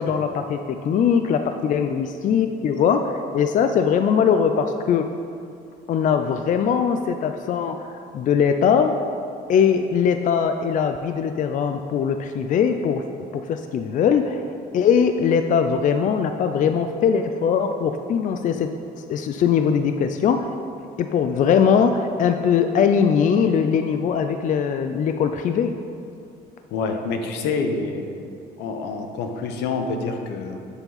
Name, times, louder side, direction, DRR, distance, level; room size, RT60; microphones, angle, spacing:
voice 1, 0.0-5.1 5.9-9.0 9.5-18.7 19.0-20.5 21.0-25.7, left 7 dB, 50° left, 7 dB, 0.5 m, -21 dB
voice 2, 26.7-28.3 28.6-30.6, left 4 dB, 85° left, 5 dB, 1.0 m, -27 dB
10.5 x 7.2 x 4.1 m, 2.5 s
cardioid pair, 110°, 17 cm